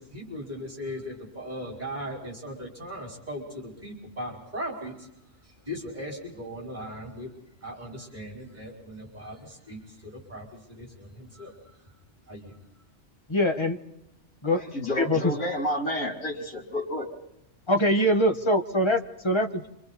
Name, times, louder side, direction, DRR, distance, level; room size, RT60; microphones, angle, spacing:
voice 1, 0.0-5.1 5.7-7.3 7.6-10.5 10.8-11.6 12.3-12.6, equal, 35° right, -1 dB, 5.2 m, -38 dB
voice 2, 13.3-13.8 14.4-14.6 14.9-15.3 17.7-19.7, equal, 20° left, 6 dB, 1.5 m, -23 dB
voice 3, 14.6-17.1, left 1 dB, 80° left, 1 dB, 4.2 m, -30 dB
28.5 x 26.0 x 4.2 m, 0.79 s
omnidirectional pair, 1.4 m